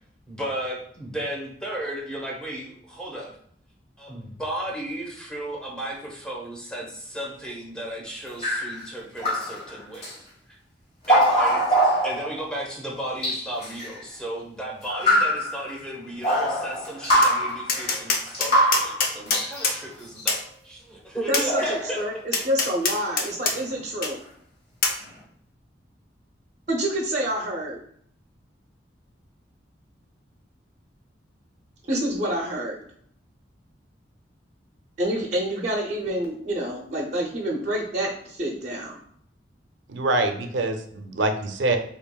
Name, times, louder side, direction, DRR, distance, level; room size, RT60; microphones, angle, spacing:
voice 1, 0.3-3.3 4.0-10.1 10.5-10.6 11.1-11.8 12.0-22.0, right 1 dB, 5° left, -2 dB, 0.8 m, -34 dB
sound 1, 8.4-8.9 9.2-9.7 10.0-10.1 11.0-12.6 13.2-14.0 14.9-15.8 16.2-19.8 20.2-20.3 21.5-22.2 22.8-23.0 23.2-23.6, equal, 35° left, 1.3 m, -23 dB
Tap, 17.2-17.3 17.7-19.8 20.3-20.4 21.3-21.5 22.3-23.6 24.0-24.1 24.8-25.0, left 4 dB, 50° left, 0.5 m, -24 dB
voice 2, 21.3-24.2 26.7-27.8 31.9-32.8 35.0-39.0, right 1 dB, 40° right, -1 dB, 0.5 m, -27 dB
voice 3, 39.9-41.8, right 2 dB, 85° right, 6 dB, 0.5 m, -25 dB
4.4 x 2.9 x 2.2 m, 0.63 s
head